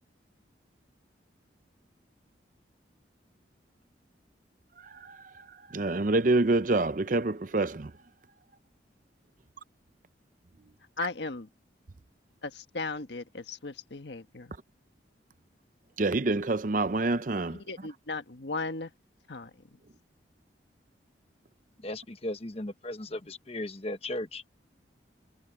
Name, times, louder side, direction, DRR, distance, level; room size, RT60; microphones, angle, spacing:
voice 1, 5.7-7.9 16.0-17.6, right 2 dB, 45° right, 0.6 m, -26 dB
voice 2, 11.0-11.5 12.4-14.5 17.5-18.9 19.3-19.5, left 3 dB, 70° left, 1.4 m, -36 dB
voice 3, 21.8-24.4, left 1 dB, 35° left, 1.1 m, -36 dB
head